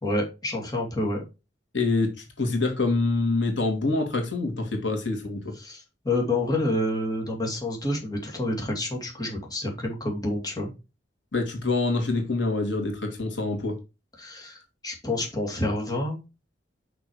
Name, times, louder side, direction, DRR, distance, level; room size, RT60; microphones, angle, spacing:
voice 1, 0.0-1.2 5.6-10.7 14.2-16.2, left 1 dB, 20° left, 2.6 m, -28 dB
voice 2, 1.7-2.1 2.4-5.5 11.3-13.8, left 3 dB, 80° left, 2.4 m, -26 dB
6.1 x 6.1 x 4.8 m
head